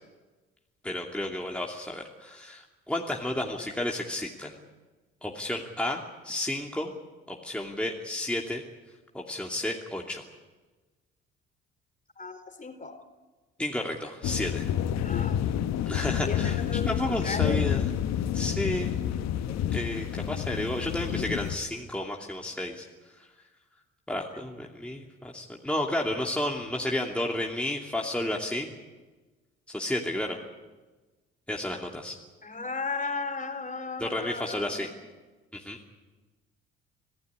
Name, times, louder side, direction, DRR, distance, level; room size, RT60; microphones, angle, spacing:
voice 1, 0.8-4.6 5.2-6.9 7.3-8.6 9.1-10.2 13.6-14.7 15.9-16.6 16.9-17.8 18.3-19.0 19.7-22.9 24.1-28.7 29.7-30.4 31.5-32.2 34.0-34.9 35.5-35.8, left 1 dB, 5° left, -1 dB, 2.7 m, -32 dB
voice 2, 12.2-13.0 15.0-15.6 16.2-17.6 19.5-19.7 21.2-21.3 32.4-35.0, left 4 dB, 25° left, 7 dB, 4.1 m, -36 dB
sound 1, 14.2-21.6, left 10 dB, 60° left, 1.3 m, -29 dB
25.5 x 17.0 x 9.7 m, 1.2 s
hypercardioid pair, 50°, 31 cm